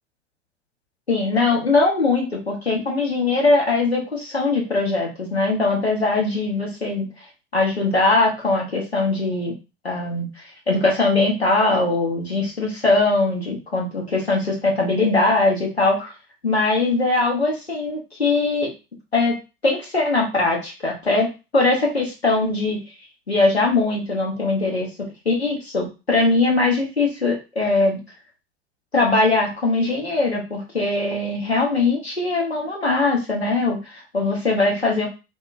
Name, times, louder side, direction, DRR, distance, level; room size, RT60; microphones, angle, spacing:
voice 1, 1.1-7.1 7.5-9.5 9.8-16.1 16.4-18.7 19.1-19.3 19.6-22.8 23.3-24.9 25.2-28.0 28.9-35.1, left 3 dB, 85° left, -2 dB, 1.1 m, -21 dB
4.1 x 2.0 x 2.5 m, 0.30 s
figure-of-eight pair, 75°, 31 cm